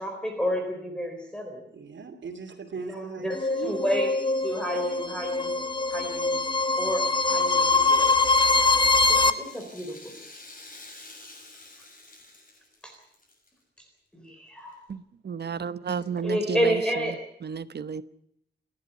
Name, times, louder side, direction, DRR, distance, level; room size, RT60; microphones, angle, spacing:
voice 1, 0.0-1.7 2.9-4.1 4.4-5.5 5.9-6.4 6.8-8.1 9.1-10.1 12.8-13.0 13.8-13.9 14.1-14.8 16.2-17.1, equal, 5° left, 3.8 m, -30 dB
voice 2, 1.7-3.9, right 5 dB, 90° right, 2.7 m, -38 dB
sound 1, 3.3-9.3, left 3 dB, 25° left, 1.1 m, -23 dB
Rattle (instrument), 8.3-13.5 13.8-13.9 14.7-14.8, left 2 dB, 45° left, 6.7 m, -49 dB
voice 3, 14.9-18.0, right 6 dB, 60° right, 1.0 m, -33 dB
28.5 x 11.5 x 9.4 m
wide cardioid pair, 165°, 19 cm